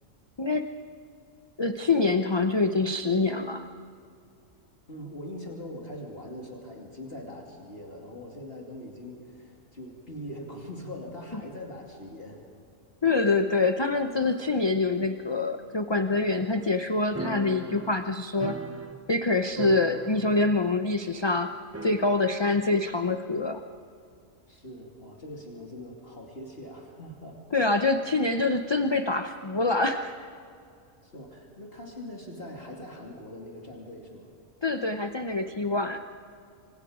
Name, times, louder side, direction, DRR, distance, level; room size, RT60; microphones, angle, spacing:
voice 1, 0.4-0.7 1.6-3.7 13.0-18.6 19.1-23.6 27.5-30.2 34.6-36.0, left 3 dB, 25° left, 7 dB, 0.6 m, -25 dB
voice 2, 4.9-12.4 24.5-27.4 31.0-34.3, left 1 dB, 45° left, -1 dB, 2.9 m, -42 dB
sound 1, 17.1-19.3 19.5-20.6 20.8-20.9 21.7-22.5, right 2 dB, 20° right, 0.4 m, -38 dB
28.5 x 25.5 x 5.0 m, 2.4 s
omnidirectional pair, 1.4 m